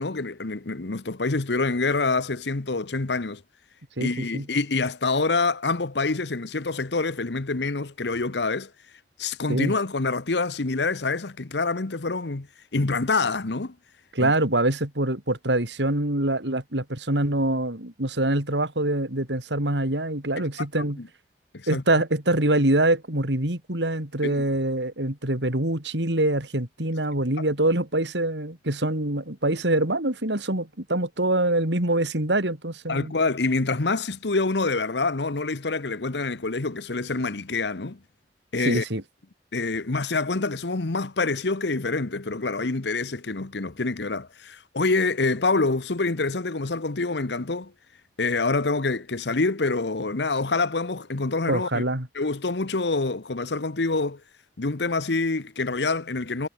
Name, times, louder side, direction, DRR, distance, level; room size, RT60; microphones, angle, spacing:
voice 1, 0.0-3.4 4.0-8.7 9.2-12.5 12.7-13.7 14.2-14.3 21.0-21.1 21.5-21.8 24.2-24.5 32.9-38.0 38.5-38.8 39.5-47.7 48.2-51.8 52.1-54.2 54.6-56.5, left 3 dB, 80° left, 1.1 m, -26 dB
voice 2, 4.0-4.5 9.5-9.7 14.1-21.0 21.7-33.1 38.6-39.0 51.5-52.1, right 1 dB, 85° right, 4.3 m, -24 dB
head